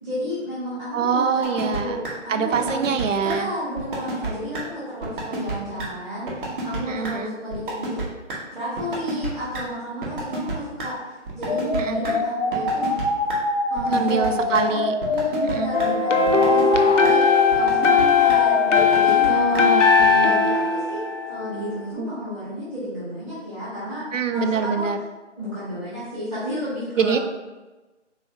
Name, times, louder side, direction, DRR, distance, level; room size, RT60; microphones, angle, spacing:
voice 1, 0.0-8.0 8.5-12.9 13.7-14.8 15.1-17.2 17.5-19.7 20.1-21.0 21.3-24.9 25.4-27.2, equal, 5° right, -15 dB, 0.8 m, -32 dB
voice 2, 0.9-2.0 2.3-3.5 6.8-7.4 11.7-12.2 13.9-14.9 15.5-15.8 19.3-20.4 22.0-22.1 24.1-25.0 27.0-27.2, right 5 dB, 85° right, 7 dB, 0.5 m, -24 dB
sound 1, 1.4-1.8 2.0-2.1 2.5-3.0 3.3-3.4 3.8-4.3 4.5-4.6 5.0-5.5 5.8-5.9 6.3-6.8 7.0-7.1 7.5-8.0 8.3-8.4 8.8-9.6 10.0-10.9 11.3-12.1 12.5-13.0 13.3-13.4 13.8-14.3 14.5-14.6 15.0-15.5 15.8-15.9 16.3-16.8 17.0-17.1 17.5-18.0 18.3-18.4 18.8-19.3 19.5-19.6 20.0-20.1, right 2 dB, 45° right, 0.9 m, -30 dB
sound 2, 11.5-18.8, left 2 dB, 35° left, 0.6 m, -25 dB
sound 3, 15.7-21.7, left 6 dB, 80° left, 0.6 m, -19 dB
3.7 x 3.0 x 2.7 m, 1.2 s
figure-of-eight pair, 150°, 37 cm